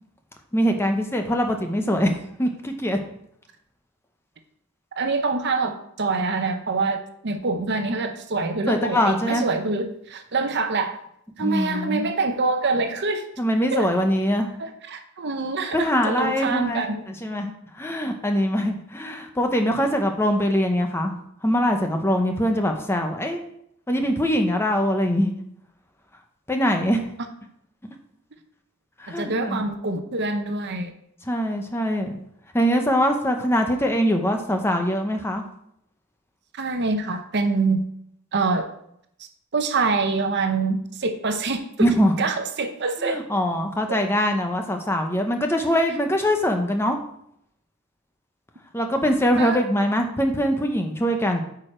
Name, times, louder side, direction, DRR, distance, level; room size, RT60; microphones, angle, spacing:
voice 1, 0.5-2.1 2.4-3.0 8.7-9.5 11.4-12.1 13.4-14.5 15.7-17.5 17.8-23.4 23.9-25.3 26.5-27.0 29.0-29.7 31.3-32.2 32.5-35.4 41.8-42.1 43.0-47.0 48.7-51.4, equal, 10° left, 4 dB, 0.7 m, -23 dB
voice 2, 5.0-11.0 11.4-13.3 13.7-13.9 14.6-17.1 29.2-30.9 36.6-37.8 38.3-38.7 39.5-43.2 43.9-44.0 49.4-49.6, right 3 dB, 50° right, 7 dB, 0.8 m, -25 dB
8.9 x 4.9 x 4.4 m, 0.72 s
head